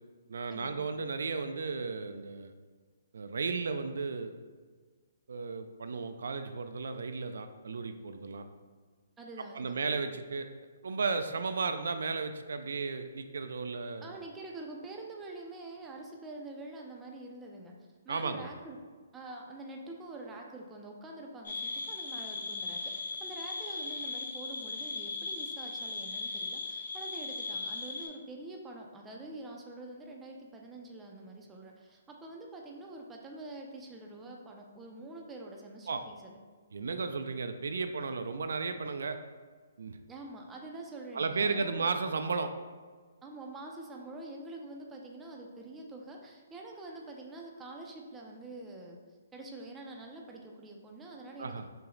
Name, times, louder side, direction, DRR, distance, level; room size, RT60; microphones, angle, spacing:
voice 1, 0.3-2.5 3.1-4.3 5.3-8.5 9.5-10.5 10.8-14.2 18.1-18.5 35.9-36.0 36.7-39.2 39.8-40.0 41.1-42.5 51.4-51.6, right 4 dB, 75° right, 8 dB, 0.3 m, -34 dB
voice 2, 9.2-9.8 14.0-17.7 18.1-18.8 19.1-36.3 40.1-41.9 43.2-49.0 49.3-51.6, right 2 dB, 10° right, 0 dB, 0.4 m, -46 dB
sound 1, 21.4-28.1, left 3 dB, 65° left, 1.2 m, -38 dB
5.6 x 2.0 x 3.8 m, 1.5 s
hypercardioid pair, 165°, 0 cm